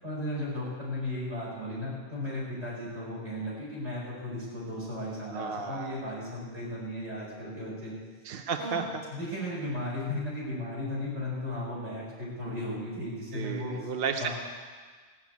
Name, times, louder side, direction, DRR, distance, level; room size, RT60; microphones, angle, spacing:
voice 1, 0.0-7.9 8.6-8.8 9.1-13.9 14.2-14.3, left 1 dB, 90° right, -7 dB, 6.2 m, -35 dB
voice 2, 5.3-6.0 8.2-8.8 13.3-14.3, right 6 dB, 60° right, 5 dB, 0.9 m, -33 dB
16.5 x 6.6 x 9.3 m, 1.5 s
omnidirectional pair, 1.2 m